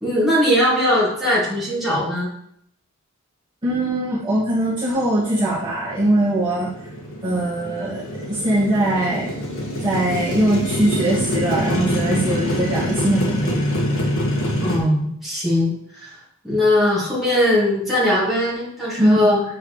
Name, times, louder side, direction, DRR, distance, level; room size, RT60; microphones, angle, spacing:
voice 1, 0.0-2.3 14.6-16.1 16.4-19.4, left 1 dB, ahead, -9 dB, 2.2 m, -20 dB
voice 2, 3.6-6.7 7.2-9.3 9.8-13.4 19.0-19.3, right 1 dB, 20° right, -10 dB, 1.7 m, -21 dB
Motorcycle, 5.5-14.8, equal, 65° left, 1.5 m, -25 dB
8.9 x 4.7 x 3.1 m, 0.72 s
head